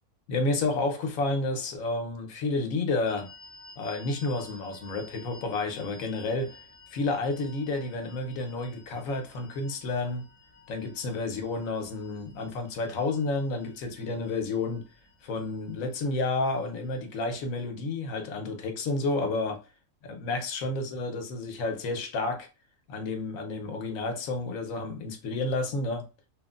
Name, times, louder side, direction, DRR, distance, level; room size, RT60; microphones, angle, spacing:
voice 1, 0.3-3.3 3.8-6.6 6.9-10.3 10.7-14.9 15.2-19.6 20.0-22.5 22.9-26.0, left 3 dB, 90° left, 1.1 m, -30 dB
sound 1, 3.0-17.6, left 3 dB, 35° left, 0.7 m, -54 dB
3.0 x 2.4 x 2.3 m
omnidirectional pair, 1.4 m